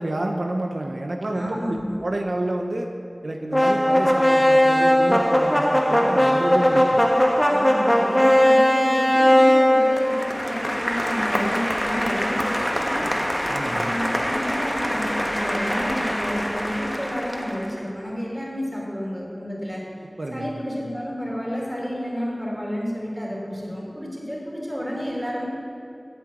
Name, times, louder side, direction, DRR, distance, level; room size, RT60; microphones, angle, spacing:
voice 1, 0.0-2.9 3.2-7.0 13.5-13.9 20.2-20.5, right 1 dB, 90° right, 2 dB, 0.7 m, -28 dB
voice 2, 1.3-2.0 7.5-13.3 13.7-19.9 20.3-25.5, equal, 10° right, -3 dB, 3.3 m, -30 dB
sound 1, 3.5-17.7, equal, 10° left, 1.2 m, -20 dB
9.0 x 7.8 x 8.3 m, 2.5 s
wide cardioid pair, 40°, 0 cm